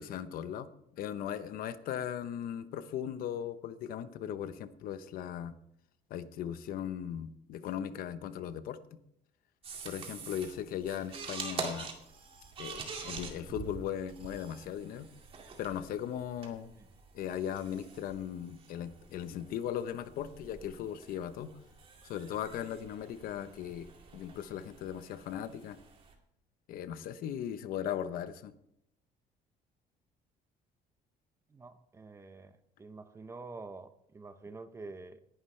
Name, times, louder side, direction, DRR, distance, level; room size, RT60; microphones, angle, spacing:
voice 1, 0.0-5.5 6.1-8.8 9.8-11.9 12.6-15.1 15.6-16.7 17.1-21.5 22.0-23.9 24.1-25.8 26.7-28.5, left 9 dB, 65° left, 12 dB, 0.9 m, -38 dB
sound 1, 9.6-26.1, right 5 dB, 35° right, 2.3 m, -46 dB
voice 2, 31.5-35.2, right 3 dB, 15° right, 11 dB, 0.7 m, -47 dB
19.0 x 11.0 x 3.3 m, 0.75 s
cardioid pair, 165°, 16 cm